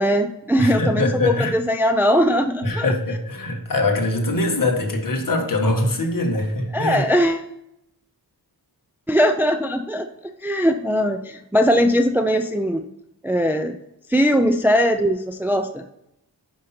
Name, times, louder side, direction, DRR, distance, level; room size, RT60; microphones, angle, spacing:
voice 1, 0.0-2.9 6.7-7.5 9.1-12.9 13.2-13.8 14.1-15.8, equal, 5° right, 0.4 m, -20 dB
voice 2, 0.6-1.6 2.6-7.1, left 2 dB, 50° left, 1.8 m, -22 dB
10.0 x 5.5 x 4.4 m
wide cardioid pair, 125°, 43 cm